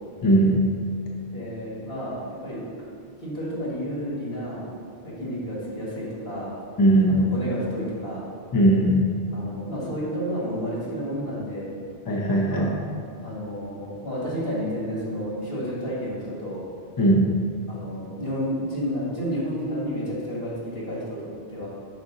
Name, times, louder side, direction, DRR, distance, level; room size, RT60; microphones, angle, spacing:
voice 1, 0.2-0.6 6.8-7.2 8.5-9.0 12.1-12.7 17.0-17.2, right 1 dB, 25° left, -2 dB, 0.6 m, -18 dB
voice 2, 1.3-2.6 3.2-4.7 5.0-6.6 7.0-8.3 9.3-11.7 12.4-12.8 13.1-16.6 17.7-21.7, equal, 75° left, -7 dB, 2.1 m, -31 dB
5.9 x 5.2 x 3.9 m, 2.2 s
omnidirectional pair, 1.1 m